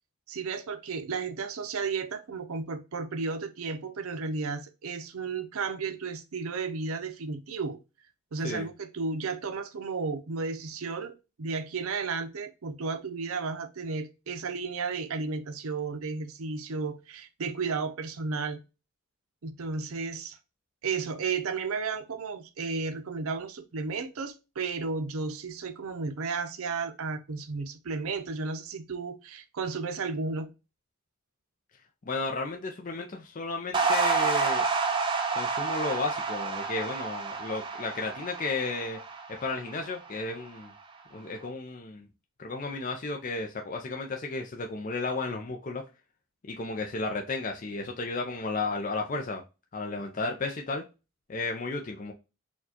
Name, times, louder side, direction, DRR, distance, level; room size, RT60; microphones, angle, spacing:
voice 1, 0.3-7.8 8.3-18.6 19.4-20.4 20.8-30.5, right 4 dB, 80° right, 0.6 m, -33 dB
voice 2, 32.1-34.6 35.3-39.0 39.4-40.7 41.1-42.1 42.4-45.8 46.5-49.4 49.7-50.8 51.3-52.1, left 3 dB, 35° left, 0.4 m, -33 dB
sound 1, 33.7-40.2, right 4 dB, 20° right, 0.5 m, -29 dB
4.4 x 2.3 x 2.8 m
head